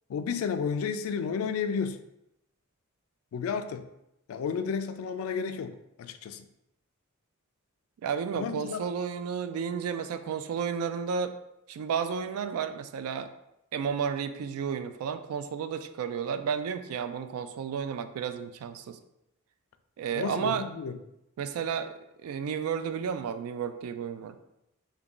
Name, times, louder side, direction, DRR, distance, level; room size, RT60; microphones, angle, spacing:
voice 1, 0.1-2.0 3.3-3.9 4.3-6.5 8.4-8.8 20.1-21.0, left 6 dB, 70° left, 10 dB, 0.3 m, -32 dB
voice 2, 8.0-11.3 11.7-13.3 13.7-19.0 20.0-20.7 21.4-21.9 22.2-24.4, right 7 dB, 80° right, 10 dB, 0.3 m, -32 dB
3.5 x 2.2 x 3.7 m, 0.85 s
head